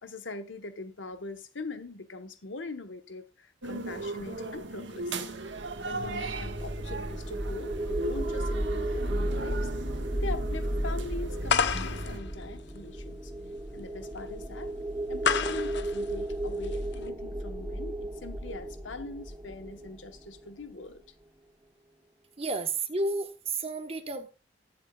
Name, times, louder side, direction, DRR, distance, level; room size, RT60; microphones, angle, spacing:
voice 1, 0.0-5.3 5.8-9.7 10.2-13.3 13.7-14.7 15.1-21.0, left 3 dB, 85° left, 1.2 m, -42 dB
sound 1, 3.6-12.2, right 2 dB, 75° right, 1.5 m, -38 dB
sound 2, 5.5-20.6, right 1 dB, 15° right, 0.6 m, -34 dB
sound 3, 11.5-17.1, left 6 dB, 65° left, 0.8 m, -32 dB
voice 2, 22.4-24.3, right 3 dB, 30° right, 1.2 m, -31 dB
19.5 x 7.4 x 2.4 m
head